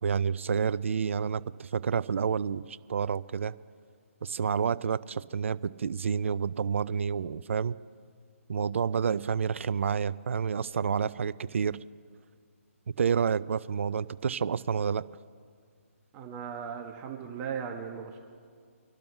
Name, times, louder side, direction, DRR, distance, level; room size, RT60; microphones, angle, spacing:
voice 1, 0.0-3.5 4.2-7.8 8.5-11.8 12.9-15.0, right 6 dB, 60° right, 16 dB, 0.5 m, -29 dB
voice 2, 16.1-18.2, right 7 dB, 20° right, 1 dB, 1.2 m, -37 dB
25.5 x 12.0 x 3.3 m, 2.1 s
figure-of-eight pair, 145°, 8 cm